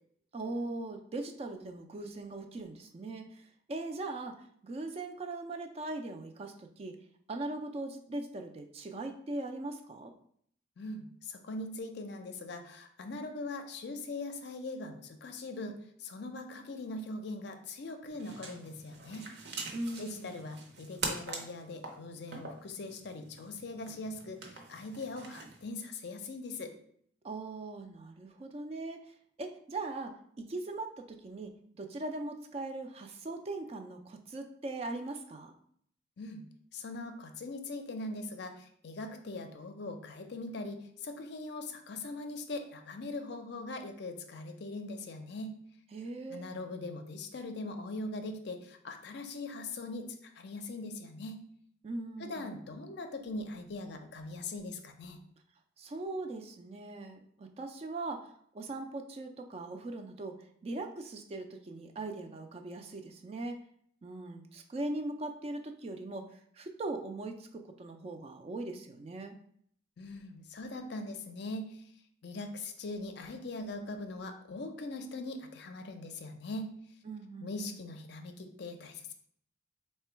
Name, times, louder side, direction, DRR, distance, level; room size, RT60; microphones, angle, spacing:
voice 1, 0.3-3.4 3.7-4.4 4.6-7.0 7.3-10.1 19.7-20.4 27.2-29.0 29.4-35.5 45.9-46.5 51.8-52.5 55.8-58.3 58.5-63.6 64.0-69.4 77.1-77.8, right 2 dB, 30° right, 5 dB, 0.3 m, -40 dB
voice 2, 10.8-15.7 16.0-19.3 20.0-26.7 36.2-36.4 36.7-45.5 46.3-51.4 52.2-55.2 70.0-71.8 72.2-76.7 77.4-79.1, left 2 dB, 55° left, 6 dB, 0.5 m, -41 dB
sound 1, 18.1-25.6, right 3 dB, 55° right, 0.7 m, -44 dB
3.7 x 2.2 x 4.3 m, 0.65 s
head